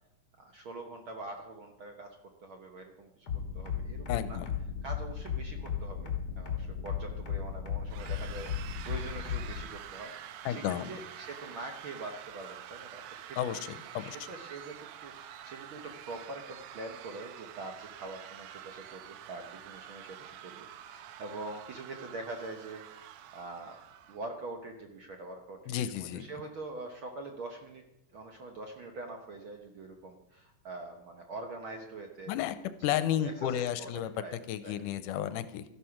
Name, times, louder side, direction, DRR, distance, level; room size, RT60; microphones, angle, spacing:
voice 1, 0.4-2.2 2.4-3.3 3.5-4.4 4.8-13.6 13.9-14.8 15.0-23.8 24.1-27.8 28.1-32.4 33.2-34.4 34.6-34.7, right 2 dB, 60° right, 3 dB, 1.4 m, -44 dB
sound 1, 3.3-9.6, left 8 dB, 45° left, 2.4 m, -35 dB
voice 2, 4.1-4.5 10.5-10.9 13.4-14.2 25.7-26.3 32.3-32.6 32.8-34.1 34.5-35.6, left 11 dB, 85° left, 12 dB, 2.3 m, -32 dB
sound 2, 7.9-24.2, right 10 dB, 80° right, 2.3 m, -47 dB
13.5 x 11.0 x 5.9 m, 0.85 s
omnidirectional pair, 3.6 m